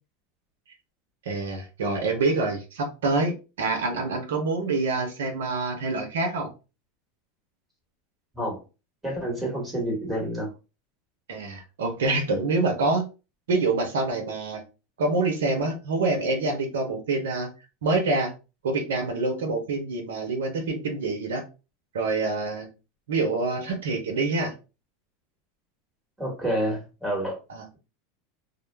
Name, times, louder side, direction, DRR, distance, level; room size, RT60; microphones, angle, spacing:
voice 1, 1.2-6.5 11.3-13.1 13.5-14.6 15.0-17.5 17.8-18.3 18.6-21.4 21.9-22.7 23.1-24.5 27.5-27.7, right 3 dB, 90° right, 0.7 m, -26 dB
voice 2, 9.0-10.5 26.2-27.4, right 1 dB, 10° right, 1.2 m, -28 dB
2.2 x 2.0 x 3.2 m
supercardioid pair, 110°, 0 cm